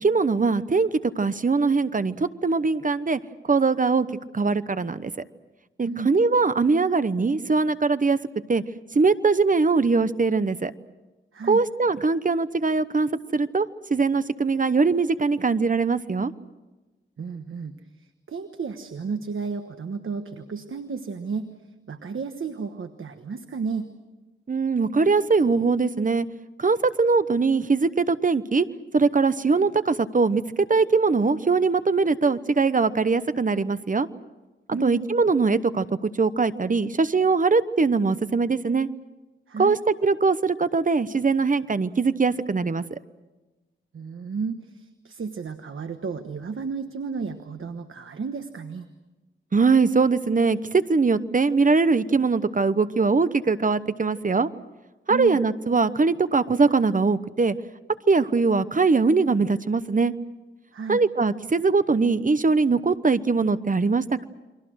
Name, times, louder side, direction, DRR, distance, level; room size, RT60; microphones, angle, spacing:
voice 1, 0.0-3.2 3.5-5.1 5.8-8.2 8.5-8.6 8.9-10.7 11.5-16.3 24.5-26.3 26.6-28.7 28.9-34.1 34.8-38.9 39.6-43.0 49.5-54.5 55.1-57.6 58.1-60.1 60.9-64.3, right 4 dB, 40° right, 14 dB, 0.9 m, -22 dB
voice 2, 11.3-11.6 17.2-17.7 18.3-21.5 21.9-23.9 34.7-35.0 39.5-39.8 43.9-48.9 55.1-55.4 60.7-61.0, right 5 dB, 80° right, 8 dB, 1.3 m, -32 dB
30.0 x 23.0 x 6.4 m, 1.1 s
wide cardioid pair, 85°, 21 cm